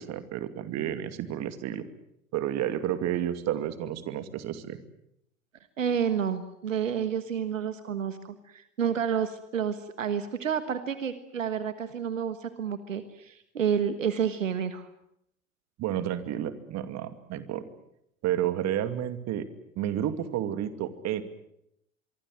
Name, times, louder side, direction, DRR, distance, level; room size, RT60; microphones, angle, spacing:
voice 1, 0.0-1.9 2.3-4.8 15.8-17.7 18.2-19.5 19.8-21.2, right 11 dB, 40° right, 11 dB, 2.5 m, -31 dB
voice 2, 5.8-14.9, right 8 dB, 75° right, 12 dB, 1.5 m, -30 dB
25.0 x 24.0 x 7.8 m, 0.77 s
figure-of-eight pair, 75°, 39 cm